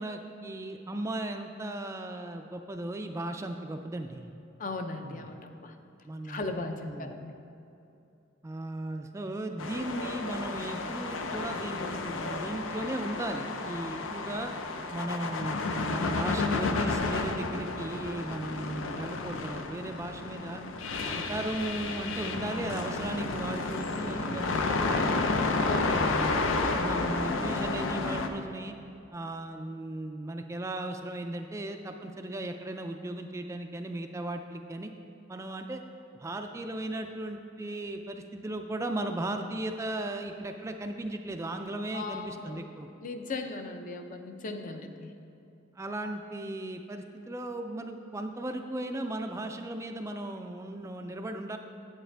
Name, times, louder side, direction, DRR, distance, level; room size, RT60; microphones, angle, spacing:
voice 1, 0.0-4.3 5.0-5.3 6.1-6.5 6.9-7.1 8.4-14.5 14.9-20.6 21.0-25.2 25.7-26.4 26.7-28.7 29.1-34.9 35.3-35.8 36.2-42.9 45.7-51.6, right 1 dB, 15° right, 5 dB, 0.3 m, -36 dB
voice 2, 4.6-5.8 6.2-7.3 25.7-25.9 41.9-42.6 43.0-45.1, left 3 dB, 45° left, 6 dB, 0.5 m, -37 dB
sound 1, 9.6-28.3, left 3 dB, 90° left, 0.6 m, -31 dB
8.8 x 8.1 x 3.3 m, 2.7 s
head